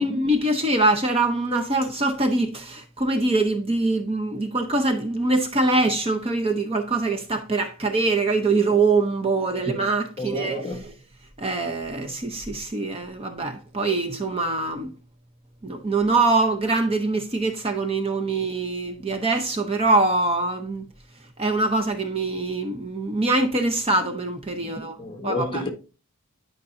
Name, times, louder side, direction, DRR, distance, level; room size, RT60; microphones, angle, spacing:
voice 1, 0.0-10.7 11.4-14.9 15.6-20.8 21.4-25.0 25.2-25.6, right 2 dB, 25° right, 0.7 m, -23 dB
voice 2, 10.2-10.8 24.6-25.7, left 3 dB, 25° left, 1.3 m, -32 dB
11.5 x 5.3 x 2.6 m
head